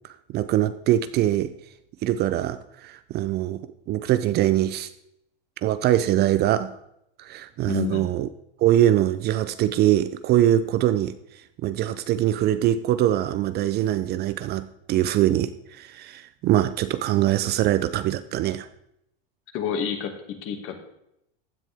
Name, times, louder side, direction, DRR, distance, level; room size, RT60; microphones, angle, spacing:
voice 1, 0.3-1.5 2.0-3.6 3.9-4.9 5.6-6.7 7.2-8.3 8.6-11.1 11.6-18.7, right 13 dB, 35° right, 13 dB, 0.5 m, -23 dB
voice 2, 7.7-8.1 19.5-20.8, left 8 dB, 45° left, 5 dB, 2.1 m, -29 dB
15.5 x 9.9 x 3.5 m, 0.78 s
hypercardioid pair, 115°, 29 cm